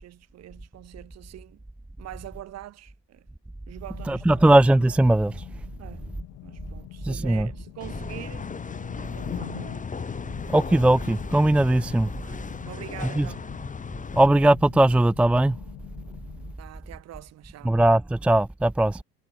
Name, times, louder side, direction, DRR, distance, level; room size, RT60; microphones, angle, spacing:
voice 1, 0.0-1.6 2.0-3.3 3.7-4.5 5.8-8.5 9.0-10.0 12.2-13.6 16.6-17.8, right 13 dB, 55° right, 3.8 m, -44 dB
sound 1, 3.9-16.5, left 19 dB, 60° left, 4.9 m, -44 dB
voice 2, 4.1-5.3 7.0-7.5 10.5-12.1 13.2-13.3 14.1-15.6 17.7-19.0, right 1 dB, 5° right, 0.5 m, -19 dB
sound 2, 7.8-14.3, left 5 dB, 25° left, 4.4 m, -36 dB
hypercardioid pair, 70°, 32 cm